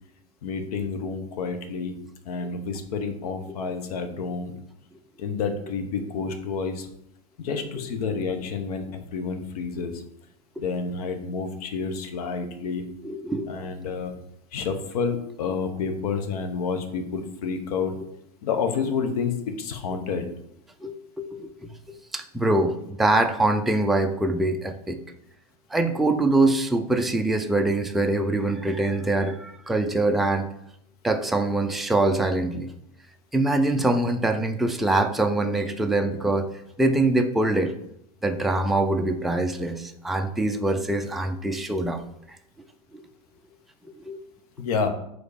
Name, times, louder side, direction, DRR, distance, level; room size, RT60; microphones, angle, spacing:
voice 1, 0.4-2.0 2.2-4.5 5.2-6.9 7.4-8.8 9.1-9.9 10.6-12.8 13.5-14.1 14.5-17.9 18.4-20.2 44.6-44.9, left 5 dB, 75° left, 7 dB, 1.1 m, -29 dB
voice 2, 13.0-13.5 20.8-21.5 21.9-25.0 25.7-30.5 31.0-32.7 33.3-36.5 36.8-37.7 38.2-42.1 42.9-43.0 44.0-44.2, right 2 dB, ahead, 5 dB, 0.4 m, -24 dB
4.9 x 4.1 x 4.9 m, 0.75 s
supercardioid pair, 125°, 20 cm